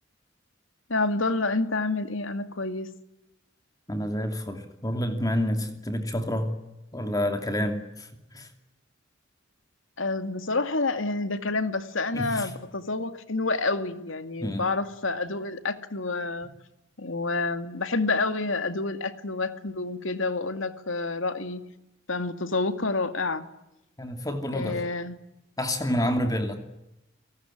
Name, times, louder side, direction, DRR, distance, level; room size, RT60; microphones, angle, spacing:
voice 1, 0.9-2.9 10.0-16.5 17.0-21.6 22.1-23.5 24.5-25.2, left 3 dB, 80° left, 9 dB, 2.3 m, -28 dB
voice 2, 3.9-6.5 6.9-8.5 12.1-12.5 14.4-14.6 24.0-24.8 25.6-26.6, equal, 20° left, 6 dB, 2.7 m, -28 dB
30.0 x 18.5 x 10.0 m, 0.91 s
head